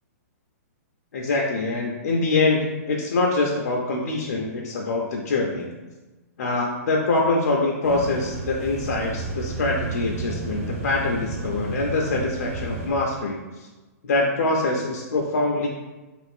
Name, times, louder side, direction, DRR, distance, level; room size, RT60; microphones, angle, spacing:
voice 1, 1.1-5.7 6.4-13.7 14.0-15.7, left 2 dB, 80° left, -1 dB, 0.4 m, -24 dB
sound 1, 7.8-12.9, right 2 dB, 65° right, 1.0 m, -31 dB
2.5 x 2.4 x 3.4 m, 1.2 s
hypercardioid pair, 165°, 9 cm